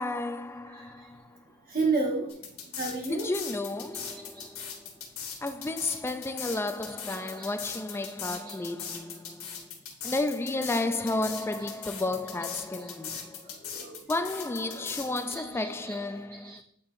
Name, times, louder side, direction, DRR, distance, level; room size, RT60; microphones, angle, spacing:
voice 1, 0.0-1.4 3.1-4.9 5.4-9.7 10.0-13.6 14.1-16.6, left 2 dB, 10° left, 0.3 m, -32 dB
voice 2, 1.7-2.3 2.8-3.3 7.4-7.5 8.0-8.1 8.4-8.6 10.2-10.9 11.2-11.4 13.5-16.1 16.4-16.6, right 3 dB, 45° right, 1.5 m, -33 dB
sound 1, 2.3-15.4, left 7 dB, 75° left, 1.4 m, -39 dB
8.4 x 4.5 x 2.5 m
head